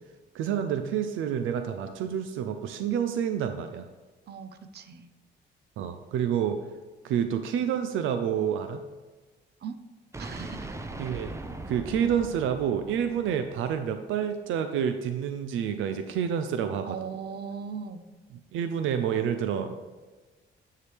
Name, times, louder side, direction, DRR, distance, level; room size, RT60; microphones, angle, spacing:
voice 1, 0.3-3.9 5.8-6.6 7.0-8.8 11.0-11.3 11.7-17.0 18.5-19.8, right 8 dB, 85° right, 8 dB, 0.5 m, -28 dB
voice 2, 4.3-5.1 9.6-9.8 10.2-10.9 16.8-18.0, right 6 dB, 55° right, 9 dB, 0.7 m, -39 dB
sound 1, 10.1-14.1, right 2 dB, 15° right, 0.6 m, -40 dB
9.8 x 4.7 x 3.4 m, 1.3 s
cardioid pair, 90°, 20 cm